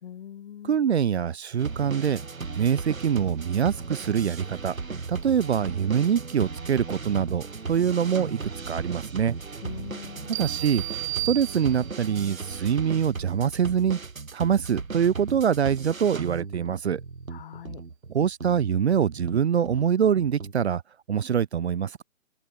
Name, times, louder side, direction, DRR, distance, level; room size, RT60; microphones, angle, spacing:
voice 1, 0.0-0.8 9.6-10.4 17.3-17.8, left 10 dB, 40° left, 3.9 m, -42 dB
voice 2, 0.6-2.2 2.5-4.8 5.1-9.3 10.3-14.0 14.3-17.0 18.1-20.8 21.1-22.0, right 8 dB, 55° right, 0.9 m, -24 dB
sound 1, 1.6-20.5, right 4 dB, 85° right, 3.5 m, -36 dB
sound 2, 10.3-12.1, right 20 dB, 10° right, 0.9 m, -33 dB
hypercardioid pair, 150°, 40 cm